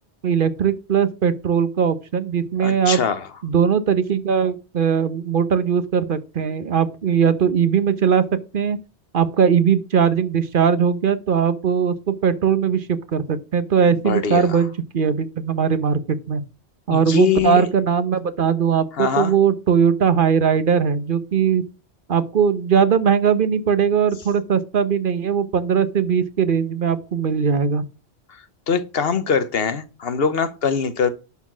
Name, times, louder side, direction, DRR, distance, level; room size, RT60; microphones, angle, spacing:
voice 1, 0.2-3.0 3.4-8.2 8.5-8.8 9.1-16.4 16.9-21.6 22.1-27.8, right 7 dB, 55° right, 1.1 m, -19 dB
voice 2, 2.6-3.3 13.9-14.6 16.9-17.7 19.0-19.3 28.7-31.1, left 6 dB, 60° left, 1.2 m, -22 dB
11.0 x 4.3 x 6.1 m
omnidirectional pair, 1.1 m